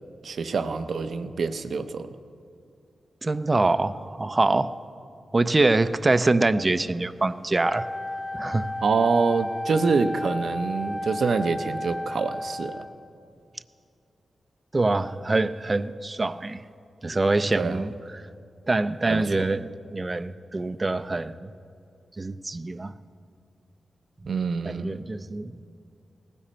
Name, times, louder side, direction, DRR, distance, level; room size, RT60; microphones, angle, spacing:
voice 1, 0.2-2.1 8.8-12.9 17.6-17.8 19.1-19.2 24.3-24.9, right 4 dB, 65° right, 0.7 m, -26 dB
voice 2, 3.2-4.7 5.3-7.9 8.3-8.7 14.7-16.6 17.0-18.2 18.7-21.5 22.2-22.9 24.6-25.5, right 2 dB, 30° right, 0.5 m, -24 dB
Wind instrument woodwind instrument, 7.6-13.1, left 1 dB, 40° left, 1.0 m, -33 dB
18.5 x 15.5 x 4.4 m
wide cardioid pair, 90°, 0 cm